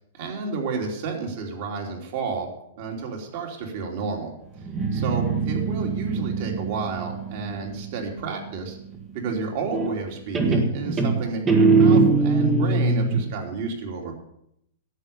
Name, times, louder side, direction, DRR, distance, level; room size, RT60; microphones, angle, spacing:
voice 1, 0.1-2.5 2.8-4.4 4.9-8.8 9.1-14.1, right 4 dB, 50° right, 0 dB, 3.2 m, -31 dB
Guitar, 4.6-8.2 9.7-10.1 10.3-13.3, right 3 dB, 15° right, 1.3 m, -22 dB
11.0 x 8.1 x 7.0 m, 0.76 s
supercardioid pair, 155°, 0 cm